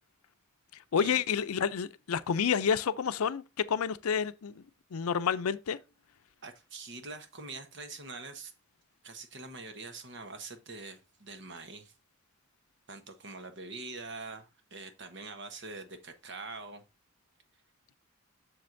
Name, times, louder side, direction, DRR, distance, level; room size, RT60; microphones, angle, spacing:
voice 1, 0.9-4.6 4.9-5.8, left 7 dB, 85° left, 0.5 m, -29 dB
voice 2, 6.4-8.5 9.0-11.9 12.9-16.8, right 3 dB, 55° right, 1.1 m, -44 dB
7.6 x 6.4 x 2.6 m
head